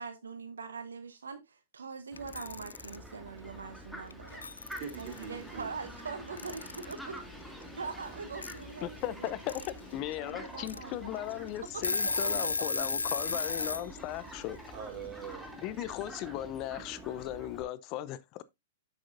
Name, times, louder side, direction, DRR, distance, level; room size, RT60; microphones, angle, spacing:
voice 1, 0.0-4.4 5.0-7.5 7.7-9.3 10.2-11.2 11.7-11.8 12.2-12.9 13.2-13.3 13.7-14.6, right 5 dB, 80° right, 0.9 m, -43 dB
Fowl, 2.1-17.6, equal, ahead, 2.0 m, -47 dB
Alarm / Clock, 2.2-3.0 4.1-4.2 4.4-5.2 6.4-7.0 8.4-8.5 9.3-9.7 10.1-10.2 10.6-10.8 11.3-11.4 11.7-13.8, left 4 dB, 85° left, 0.3 m, -33 dB
sound 1, 4.3-16.1, left 3 dB, 65° left, 2.8 m, -58 dB
voice 2, 4.8-5.7 14.7-15.5, right 7 dB, 40° right, 3.4 m, -42 dB
voice 3, 8.8-9.5 9.9-14.6 15.5-18.4, left 14 dB, 40° left, 0.6 m, -37 dB
7.7 x 7.6 x 2.6 m
figure-of-eight pair, 105°, 0 cm